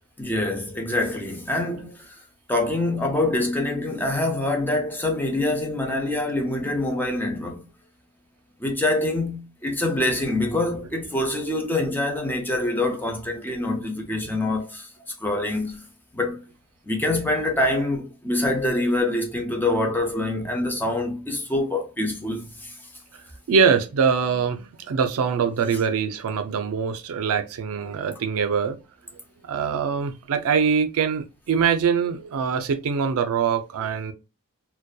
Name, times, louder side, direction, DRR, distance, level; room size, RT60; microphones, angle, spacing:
voice 1, 0.2-2.1 2.5-7.6 8.6-14.9 15.2-15.8 16.1-16.4 16.9-22.7, left 2 dB, 10° left, 0.5 m, -25 dB
voice 2, 23.5-28.8 29.4-34.1, right 6 dB, 70° right, 0.4 m, -23 dB
2.6 x 2.2 x 2.2 m
head